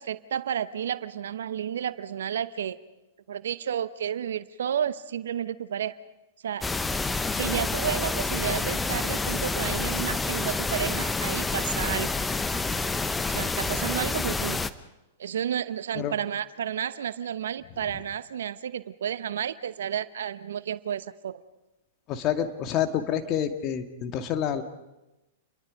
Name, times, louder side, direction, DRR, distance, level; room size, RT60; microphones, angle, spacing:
voice 1, 0.0-2.8 3.3-5.9 6.4-6.7 7.4-12.1 13.0-14.6 15.2-21.4, right 9 dB, 70° right, 14 dB, 0.9 m, -31 dB
sound 1, 6.6-14.7, left 3 dB, 10° left, 0.9 m, -28 dB
voice 2, 22.1-24.6, left 9 dB, 40° left, 7 dB, 2.0 m, -28 dB
29.0 x 22.5 x 5.2 m, 1.0 s
hypercardioid pair, 105°, 0 cm